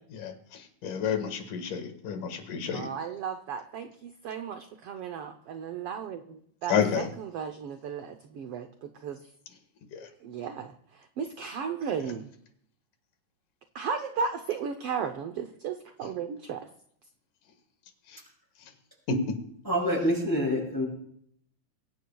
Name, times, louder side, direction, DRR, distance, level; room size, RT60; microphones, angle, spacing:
voice 1, 0.1-2.9 6.7-7.1 9.9-10.1 19.1-19.2, left 6 dB, 85° left, 6 dB, 3.3 m, -30 dB
voice 2, 2.7-9.2 10.2-12.3 13.7-16.7, right 6 dB, 70° right, 7 dB, 1.4 m, -35 dB
voice 3, 19.6-20.9, equal, 5° left, -3 dB, 6.0 m, -26 dB
23.5 x 17.5 x 2.3 m, 0.66 s
omnidirectional pair, 3.6 m